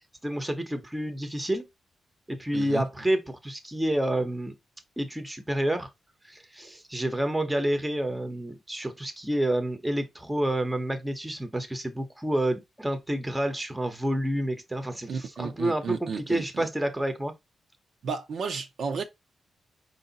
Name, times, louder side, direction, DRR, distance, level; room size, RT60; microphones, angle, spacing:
voice 1, 0.2-1.7 2.3-4.5 5.0-5.9 6.3-17.3, right 1 dB, 10° right, 0.8 m, -29 dB
voice 2, 15.1-16.7 18.0-19.0, right 5 dB, 65° right, 0.7 m, -33 dB
4.9 x 2.7 x 3.9 m
wide cardioid pair, 125°, 0 cm